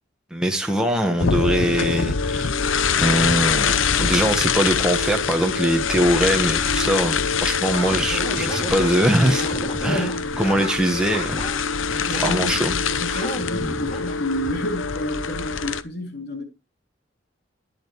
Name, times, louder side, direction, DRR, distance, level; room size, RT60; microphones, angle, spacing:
voice 1, 0.3-2.6 3.0-9.5 9.8-10.1 10.4-11.4 12.2-12.7, right 1 dB, 5° right, 1.4 m, -22 dB
sound 1, 1.2-15.8, left 6 dB, 85° left, 0.7 m, -24 dB
sound 2, 7.7-10.7 11.1-11.6 11.9-12.4 12.8-14.1, left 1 dB, 35° left, 3.3 m, -32 dB
voice 2, 9.9-10.3 12.0-16.4, left 1 dB, 55° left, 3.0 m, -30 dB
11.5 x 11.0 x 3.2 m
head